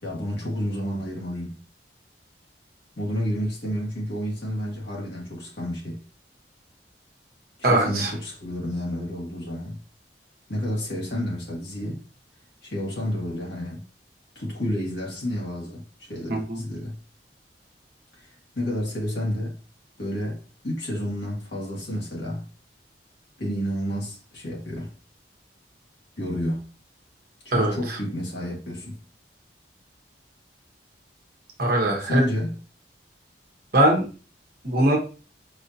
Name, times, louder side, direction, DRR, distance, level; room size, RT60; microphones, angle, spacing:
voice 1, 0.0-1.6 3.0-6.0 7.7-9.8 10.5-12.0 12.6-13.8 14.3-17.0 18.2-18.3 18.5-19.5 20.0-22.5 23.4-24.9 26.2-26.7 27.4-29.0 32.0-32.5, equal, 70° left, 1.6 m, -30 dB
voice 2, 7.6-8.1 16.3-16.6 27.5-28.0 31.6-32.2 33.7-34.0 34.6-35.0, right 1 dB, 55° right, 1.1 m, -21 dB
4.8 x 2.8 x 2.6 m
head